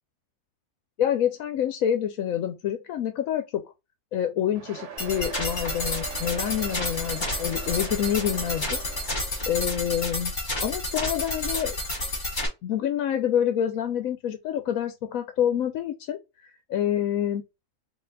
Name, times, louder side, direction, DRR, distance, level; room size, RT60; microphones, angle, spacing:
voice 1, 1.0-3.6 4.1-8.8 9.5-10.3 10.6-11.8 12.6-17.4, left 10 dB, 80° left, 1.1 m, -27 dB
sound 1, 4.5-9.6, right 8 dB, 65° right, 1.1 m, -41 dB
sound 2, 5.0-12.5, left 1 dB, 35° left, 1.7 m, -30 dB
4.2 x 2.8 x 3.9 m
omnidirectional pair, 1.4 m